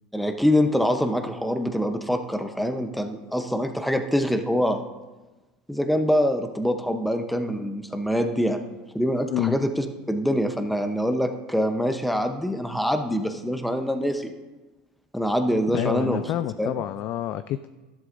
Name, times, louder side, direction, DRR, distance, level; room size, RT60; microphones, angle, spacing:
voice 1, 0.1-4.8 5.7-8.6 8.9-14.3 15.1-16.2 16.6-16.7, equal, ahead, 6 dB, 0.8 m, -24 dB
voice 2, 15.7-17.7, left 13 dB, 55° left, 12 dB, 0.4 m, -27 dB
13.0 x 11.0 x 2.6 m, 1.2 s
supercardioid pair, 105°, 4 cm